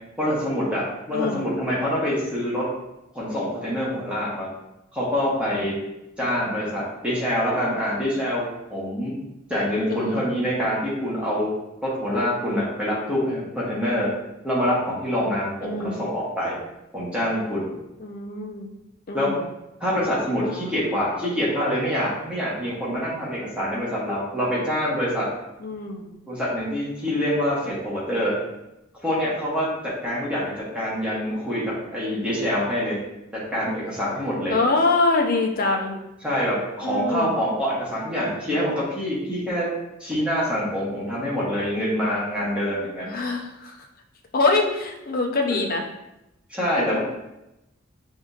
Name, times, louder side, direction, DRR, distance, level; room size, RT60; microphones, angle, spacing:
voice 1, 0.2-2.7 3.1-4.5 4.9-5.7 6.2-8.4 8.7-9.2 9.5-11.5 11.8-14.1 14.4-16.6 16.9-17.7 19.1-19.3 19.8-25.3 26.3-28.4 29.0-33.0 33.3-34.5 36.2-39.7 40.0-43.1 46.5-47.0, equal, 5° right, -7 dB, 1.1 m, -25 dB
voice 2, 1.1-1.5 9.9-10.3 15.6-16.1 18.0-18.7 19.1-19.5 20.4-20.9 25.6-26.2 34.5-36.0 36.8-37.3 43.1-43.9 44.3-45.8 46.8-47.0, left 3 dB, 45° left, 2 dB, 0.6 m, -25 dB
5.8 x 2.7 x 2.4 m, 0.91 s
head